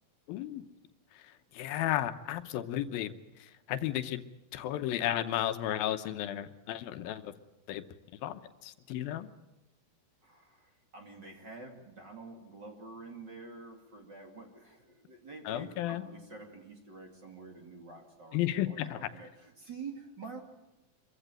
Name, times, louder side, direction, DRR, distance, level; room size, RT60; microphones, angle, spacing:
voice 1, 0.3-0.7 1.1-3.1 3.4-4.2 4.5-7.3 7.7-7.8 8.2-9.3 15.5-16.0 18.3-19.1, left 12 dB, 85° left, 10 dB, 2.7 m, -34 dB
voice 2, 10.2-18.4 18.6-20.4, right 4 dB, 35° right, 3 dB, 2.6 m, -48 dB
25.0 x 15.0 x 9.0 m, 1.0 s
omnidirectional pair, 4.2 m